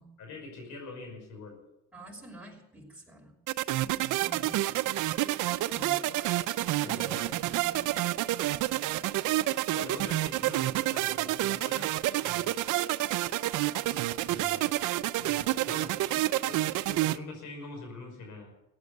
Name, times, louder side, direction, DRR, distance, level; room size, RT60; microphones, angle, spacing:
voice 1, 0.2-1.6 6.8-7.2 9.7-12.7 14.2-14.8 15.2-18.5, left 3 dB, 80° left, 3 dB, 5.5 m, -45 dB
voice 2, 1.9-3.3 3.7-4.6 5.7-6.0 6.8-8.1, right 1 dB, 5° right, -3 dB, 5.5 m, -48 dB
sound 1, 3.5-17.2, right 15 dB, 85° right, 0.6 m, -29 dB
15.0 x 9.6 x 9.3 m, 0.89 s
cardioid pair, 90°, 30 cm